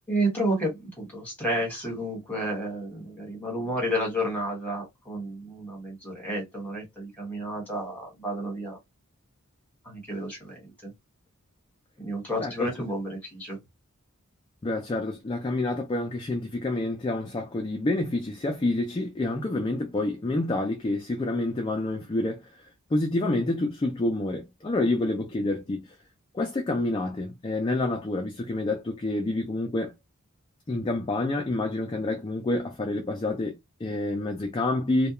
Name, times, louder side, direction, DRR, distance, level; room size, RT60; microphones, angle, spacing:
voice 1, 0.1-8.8 9.8-10.9 12.0-13.6, right 1 dB, 5° left, 1.3 m, -31 dB
voice 2, 14.6-22.4 22.9-25.9 26.3-29.9 30.7-35.1, left 2 dB, 20° left, 0.3 m, -28 dB
2.2 x 2.2 x 2.9 m
head